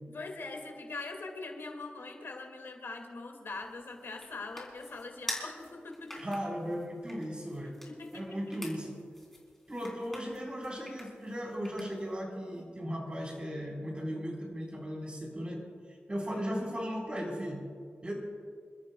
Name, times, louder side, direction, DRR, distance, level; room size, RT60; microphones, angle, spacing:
voice 1, 0.1-6.2 7.8-8.4, left 3 dB, 75° left, 2 dB, 2.1 m, -42 dB
sound 1, 3.5-12.2, left 1 dB, 5° left, 3.6 m, -47 dB
voice 2, 6.1-7.8 8.1-9.0 9.7-15.6 16.1-17.7 18.0-18.1, equal, 25° right, -2 dB, 4.2 m, -36 dB
28.0 x 13.5 x 2.3 m, 2.2 s
wide cardioid pair, 105°, 4 cm